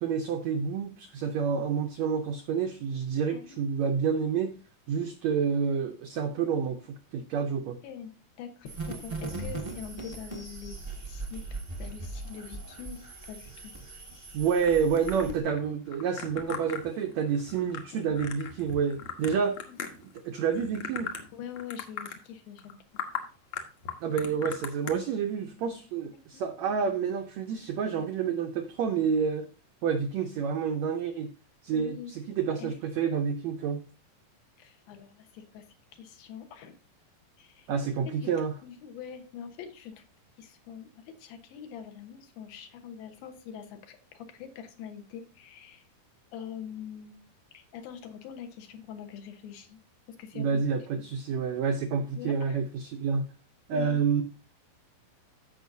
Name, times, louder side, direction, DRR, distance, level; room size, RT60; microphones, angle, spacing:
voice 1, 0.0-4.6 4.9-7.8 14.3-19.6 20.0-21.1 24.0-29.5 29.8-31.3 31.6-33.8 37.7-38.5 50.3-53.3 53.7-54.2, right 6 dB, 85° right, 1.5 m, -29 dB
voice 2, 8.4-10.8 11.0-13.0 13.3-13.7 15.2-15.4 19.7-19.8 21.3-22.8 26.3-26.4 31.7-32.1 32.6-32.7 34.6-35.6 35.9-36.8 37.4-37.7 38.2-38.3 38.6-40.0 40.4-45.9 46.3-47.3 47.5-49.8 50.2-50.6 52.2-52.6 53.7-54.2, left 8 dB, 80° left, 3.0 m, -43 dB
sound 1, 8.6-15.4, right 3 dB, 20° right, 0.8 m, -39 dB
sound 2, 14.6-20.2 20.5-21.3 21.6-22.2 22.6-22.7 23.0-23.2 23.5-24.9, left 7 dB, 60° left, 2.2 m, -38 dB
15.0 x 5.7 x 2.7 m
omnidirectional pair, 4.2 m